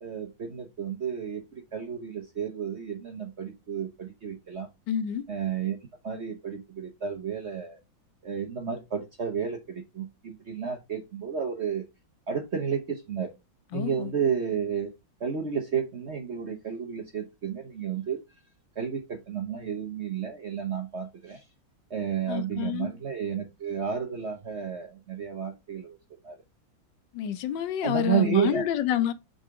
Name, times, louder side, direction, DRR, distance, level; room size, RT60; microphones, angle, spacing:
voice 1, 0.0-4.7 5.3-5.8 6.0-7.8 8.2-11.9 12.3-13.3 13.7-14.9 15.2-18.2 18.8-21.4 21.9-26.0 26.2-26.4 27.8-28.6, right 7 dB, 50° right, 0.8 m, -31 dB
voice 2, 4.9-5.2 13.7-14.1 22.3-22.9 27.1-29.1, left 10 dB, 70° left, 1.4 m, -28 dB
6.5 x 4.0 x 3.6 m
omnidirectional pair, 2.1 m